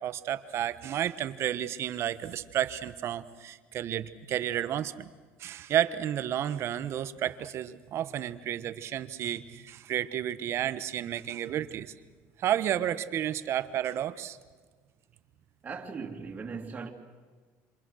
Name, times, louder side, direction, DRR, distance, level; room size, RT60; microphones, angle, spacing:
voice 1, 0.0-5.1 5.4-11.9 12.4-14.4, right 11 dB, 45° right, 1.2 m, -31 dB
voice 2, 15.6-16.9, right 5 dB, 25° right, 2.9 m, -38 dB
27.5 x 26.5 x 6.4 m
cardioid pair, 125°, 6 cm